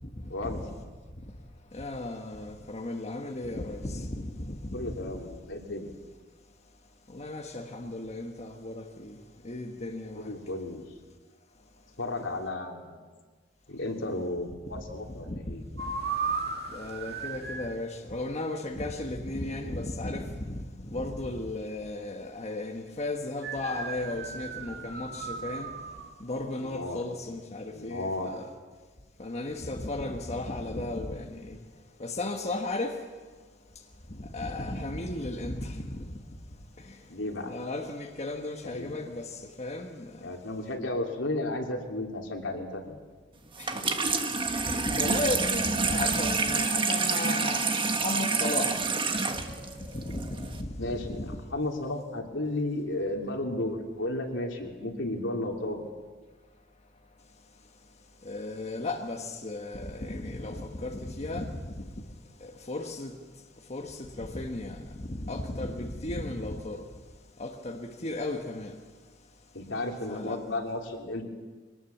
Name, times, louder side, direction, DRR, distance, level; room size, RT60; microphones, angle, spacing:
voice 1, 0.3-0.6 4.7-5.9 10.1-10.8 12.0-13.1 13.7-15.6 26.6-27.0 27.7-28.3 37.1-37.5 38.6-39.0 40.2-43.0 50.8-55.8 69.5-71.2, left 2 dB, 80° left, 3.2 m, -33 dB
voice 2, 1.7-5.1 7.1-9.1 9.4-10.3 15.3-15.4 16.7-20.6 20.9-25.7 26.2-28.5 29.2-31.6 32.0-33.0 34.2-36.2 37.4-39.3 39.6-40.1 43.6-43.7 44.5-48.7 49.9-51.3 58.2-61.5 62.7-63.1 63.7-66.8 67.4-68.7 70.1-70.4, left 2 dB, 35° left, 1.4 m, -35 dB
sound 1, 15.8-17.8 23.4-26.1, right 4 dB, 60° right, 2.1 m, -35 dB
Water tap faucet / Sink (filling or washing), 43.6-50.6, right 4 dB, 25° right, 1.4 m, -28 dB
22.5 x 19.0 x 7.2 m
head